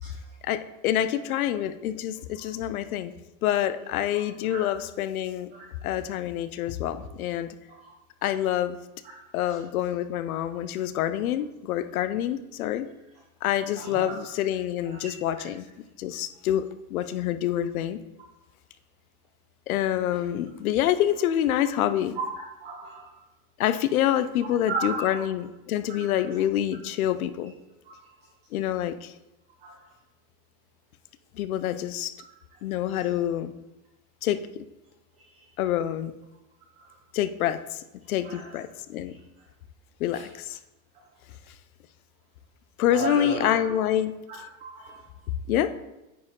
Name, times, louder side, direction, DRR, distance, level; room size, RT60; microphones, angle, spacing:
voice 1, 0.4-3.1 3.4-5.5 5.8-7.5 8.2-8.8 9.3-12.9 13.4-15.7 16.0-18.0 19.7-22.2 23.6-27.5 28.5-29.1 31.3-32.1 32.6-33.5 34.2-34.7 35.6-36.1 37.1-39.1 40.0-40.6 42.8-44.1 45.5-45.7, left 11 dB, 80° left, 12 dB, 0.7 m, -27 dB
voice 2, 13.8-14.1 14.8-15.1 22.1-22.2 22.6-23.2 24.7-25.2 25.9-26.3 27.8-28.1 29.6-29.9 32.9-33.0 35.3-35.4 36.8-36.9 38.2-38.6 39.1-39.2 40.1-40.3 40.9-41.0 42.9-43.8 44.3-45.1, right 4 dB, 15° right, -2 dB, 0.5 m, -36 dB
9.3 x 4.7 x 3.7 m, 1.0 s
supercardioid pair, 175°, 42 cm